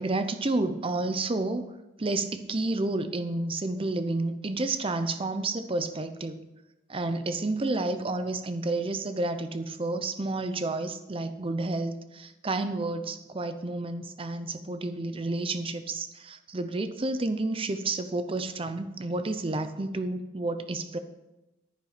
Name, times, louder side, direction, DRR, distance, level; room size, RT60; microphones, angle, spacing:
voice 1, 0.0-1.7 2.0-6.4 6.9-21.0, right 2 dB, 30° right, 9 dB, 0.7 m, -30 dB
10.5 x 9.8 x 4.3 m, 0.98 s
head